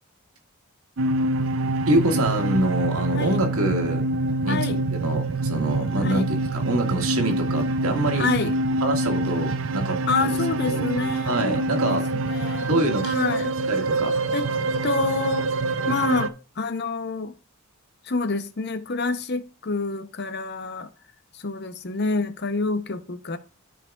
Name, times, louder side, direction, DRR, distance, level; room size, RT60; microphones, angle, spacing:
sound 1, 1.0-16.3, right 2 dB, 60° right, 0.5 m, -25 dB
voice 1, 1.9-4.0 4.4-8.2 8.8-10.0 10.6-10.9 11.2-12.0 12.6-13.1 13.7-14.2, right 1 dB, 90° right, 1.8 m, -25 dB
voice 2, 4.5-4.8 6.0-6.3 8.1-8.5 10.1-13.5 14.3-14.5 14.8-15.5 15.9-17.3 18.0-20.9 21.3-23.4, left 3 dB, 50° left, 0.7 m, -28 dB
13.5 x 4.7 x 2.4 m
head